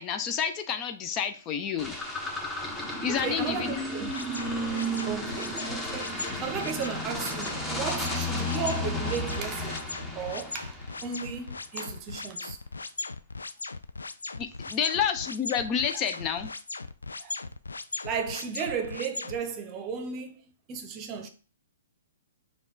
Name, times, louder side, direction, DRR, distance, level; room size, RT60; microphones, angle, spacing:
voice 1, 0.0-1.9 3.0-3.8 14.4-16.5, left 7 dB, 30° left, 0.4 m, -29 dB
sound 1, 1.8-11.3, left 1 dB, 5° left, 0.9 m, -33 dB
voice 2, 3.1-4.1 5.1-6.1 6.4-9.9 10.1-12.6 15.9-16.0 17.2-17.3 18.0-20.4 20.7-21.3, right 6 dB, 30° right, 0.7 m, -35 dB
sound 2, 4.1-19.4, left 3 dB, 90° left, 0.3 m, -38 dB
5.0 x 2.3 x 3.9 m
hypercardioid pair, 130°, 0 cm